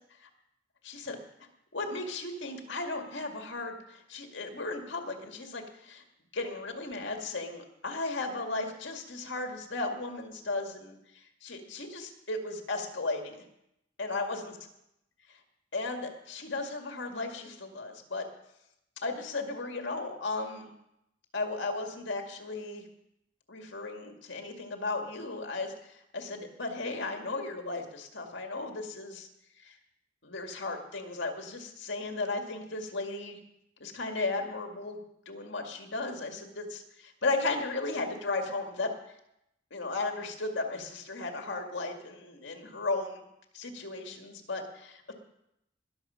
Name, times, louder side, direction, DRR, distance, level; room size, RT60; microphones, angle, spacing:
voice 1, 0.8-1.2 1.7-6.0 6.3-13.4 14.0-14.5 15.3-15.4 15.7-18.2 19.0-20.7 21.3-22.8 23.5-29.3 29.6-29.8 30.2-33.4 33.8-35.0 35.3-38.9 39.7-43.2 43.5-45.1, left 3 dB, 65° left, 3 dB, 2.1 m, -35 dB
20.5 x 7.3 x 5.7 m, 0.82 s
head